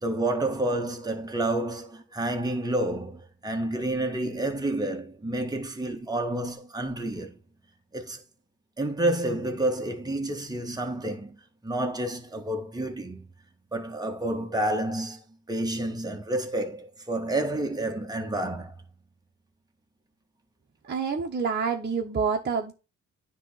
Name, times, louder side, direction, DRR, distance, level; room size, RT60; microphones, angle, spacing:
voice 1, 0.0-7.4 7.9-8.2 8.8-13.3 13.7-18.7, right 1 dB, 15° right, 1.6 m, -29 dB
voice 2, 20.8-22.7, right 5 dB, 35° right, 1.2 m, -27 dB
9.7 x 3.3 x 5.7 m
cardioid pair, 90°, 30 cm